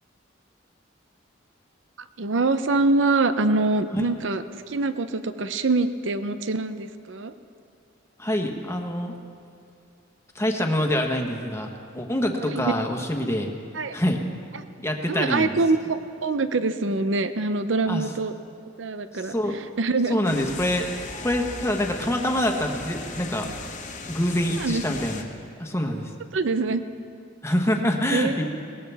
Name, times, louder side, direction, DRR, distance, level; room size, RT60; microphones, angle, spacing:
voice 1, 2.2-7.3 12.4-12.7 13.7-14.0 14.5-14.6 15.1-18.3 18.8-20.2 24.6-24.8 26.3-26.8 28.1-28.5, right 3 dB, 70° right, 11 dB, 0.7 m, -24 dB
voice 2, 8.2-9.1 10.3-11.7 11.9-13.5 13.9-14.2 14.8-15.5 17.9-18.0 19.2-19.5 20.1-20.9 21.2-23.5 24.1-25.2 25.6-26.1 27.4-28.5, left 1 dB, 15° left, 3 dB, 1.3 m, -25 dB
sound 1, 20.2-25.2, left 3 dB, 40° left, 1.2 m, -37 dB
21.0 x 18.5 x 3.5 m, 2.4 s
head